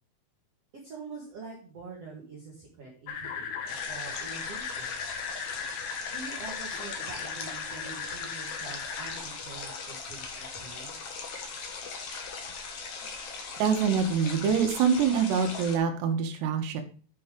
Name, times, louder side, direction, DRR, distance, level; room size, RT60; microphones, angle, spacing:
voice 1, 0.7-5.0 6.1-11.0, right 4 dB, 50° right, -3 dB, 2.1 m, -45 dB
sound 1, 3.1-9.2, left 6 dB, 70° left, 2.6 m, -37 dB
sound 2, 3.7-15.8, left 4 dB, 90° left, 1.3 m, -39 dB
voice 2, 13.6-16.8, right 6 dB, 75° right, 5 dB, 3.2 m, -25 dB
7.7 x 5.9 x 5.0 m, 0.40 s
omnidirectional pair, 5.0 m